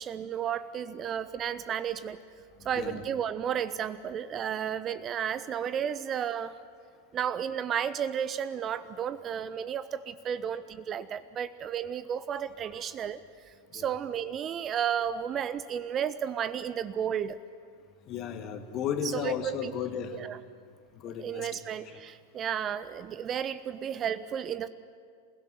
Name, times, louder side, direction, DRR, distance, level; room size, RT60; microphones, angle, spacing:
voice 1, 0.0-2.2 2.6-6.6 7.1-17.4 19.0-19.7 20.1-20.4 21.2-24.7, right 8 dB, 30° right, 15 dB, 0.6 m, -33 dB
voice 2, 2.6-3.0 13.7-13.9 18.1-20.2 21.0-21.6 21.9-22.0, left 8 dB, 35° left, 7 dB, 2.0 m, -34 dB
27.5 x 16.5 x 9.4 m, 2.1 s
figure-of-eight pair, 90°, 0 cm